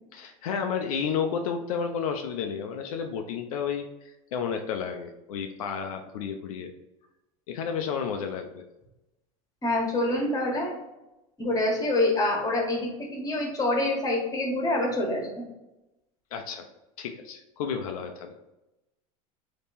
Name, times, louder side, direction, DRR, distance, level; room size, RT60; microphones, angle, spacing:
voice 1, 0.1-6.7 7.5-8.6 16.3-16.7 17.0-18.3, left 6 dB, 85° left, 5 dB, 0.5 m, -32 dB
voice 2, 9.6-10.7 11.4-15.3, left 1 dB, 20° left, 0 dB, 1.4 m, -26 dB
3.5 x 2.9 x 4.2 m, 0.95 s
hypercardioid pair, 90°, 18 cm